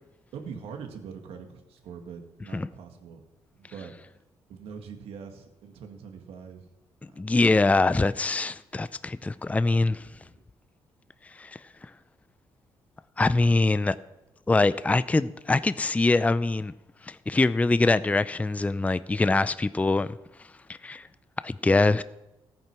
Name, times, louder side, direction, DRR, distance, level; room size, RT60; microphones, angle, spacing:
voice 1, 0.3-3.2 3.5-3.9 4.5-6.7 7.1-8.0 10.2-10.4, right 6 dB, 85° right, 2.0 m, -43 dB
voice 2, 7.2-10.1 11.4-11.5 13.2-14.0 14.5-16.7 17.0-20.1 20.8-21.1 21.4-22.0, left 3 dB, 15° left, 0.5 m, -23 dB
14.5 x 9.0 x 6.2 m
cardioid pair, 80°, 10 cm